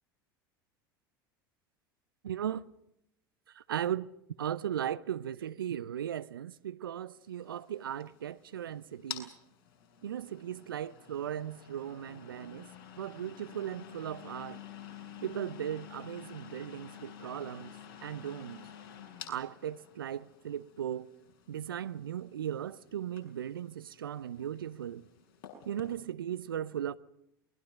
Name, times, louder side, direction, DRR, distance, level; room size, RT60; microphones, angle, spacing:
voice 1, 2.2-2.6 3.5-4.1 4.4-9.3 10.0-12.7 13.0-14.6 15.2-17.7 18.0-18.7 19.3-21.1 21.5-25.0 25.6-27.0, right 10 dB, 80° right, 0.9 m, -37 dB
sound 1, 7.3-26.0, left 9 dB, 55° left, 7.4 m, -50 dB
28.5 x 22.5 x 5.3 m
hypercardioid pair, 80°, 12 cm